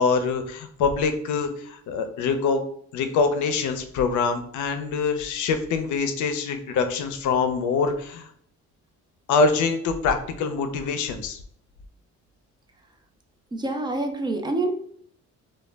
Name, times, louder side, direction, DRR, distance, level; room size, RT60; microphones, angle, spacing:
voice 1, 0.0-2.6 2.9-8.3 9.3-11.4, left 4 dB, 75° left, 8 dB, 0.5 m, -24 dB
voice 2, 13.5-14.7, right 2 dB, 15° right, 5 dB, 0.4 m, -26 dB
2.2 x 2.0 x 3.2 m, 0.63 s
cardioid pair, 90°, 30 cm